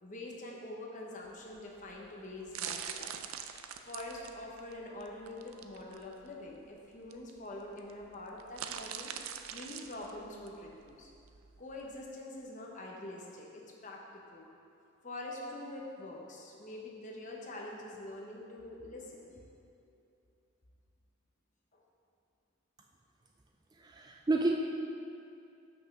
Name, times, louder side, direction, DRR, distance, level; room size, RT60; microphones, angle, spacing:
voice 1, 0.0-3.3 3.8-9.1 9.5-11.1 11.6-14.0 14.3-14.5 15.0-19.3 21.7-21.8, left 1 dB, 35° left, -1 dB, 0.9 m, -45 dB
sound 1, 1.3-12.1, right 8 dB, 80° right, 0.4 m, -44 dB
voice 2, 23.8-24.5, right 2 dB, 20° right, 1 dB, 0.3 m, -30 dB
6.2 x 5.5 x 6.1 m, 2.6 s
head